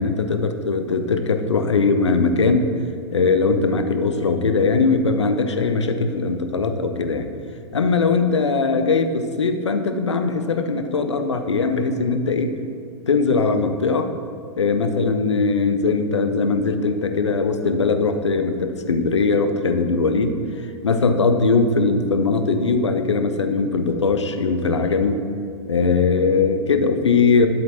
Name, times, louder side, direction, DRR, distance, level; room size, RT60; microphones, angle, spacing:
voice 1, 0.0-2.7 3.1-7.3 7.7-12.5 13.1-14.1 14.6-20.4 20.8-25.2 25.7-27.5, left 4 dB, 80° left, 7 dB, 0.7 m, -20 dB
11.0 x 7.5 x 3.0 m, 2.3 s
figure-of-eight pair, 100°, 15 cm